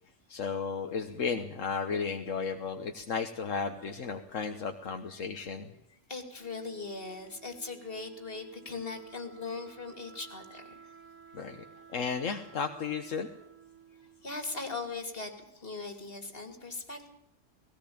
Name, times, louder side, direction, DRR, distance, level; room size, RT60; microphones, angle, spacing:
voice 1, 0.3-5.7 11.3-11.6 11.9-13.3, left 5 dB, 75° left, 6 dB, 1.5 m, -34 dB
voice 2, 6.1-10.7 14.2-15.3 15.6-17.1, left 3 dB, 45° left, 6 dB, 3.1 m, -39 dB
Wind instrument woodwind instrument, 6.4-15.1, right 8 dB, 70° right, 1.9 m, -54 dB
18.5 x 17.5 x 8.7 m, 0.78 s
omnidirectional pair, 1.3 m